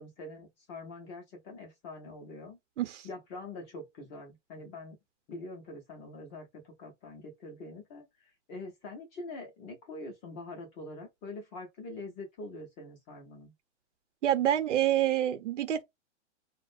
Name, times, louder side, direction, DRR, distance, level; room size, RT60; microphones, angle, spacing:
voice 1, 0.0-2.6 3.0-5.0 5.3-8.0 8.5-13.5, left 2 dB, 20° left, 0.4 m, -44 dB
voice 2, 14.2-15.8, right 11 dB, 85° right, 0.7 m, -27 dB
2.4 x 2.0 x 2.5 m
hypercardioid pair, 150°, 35 cm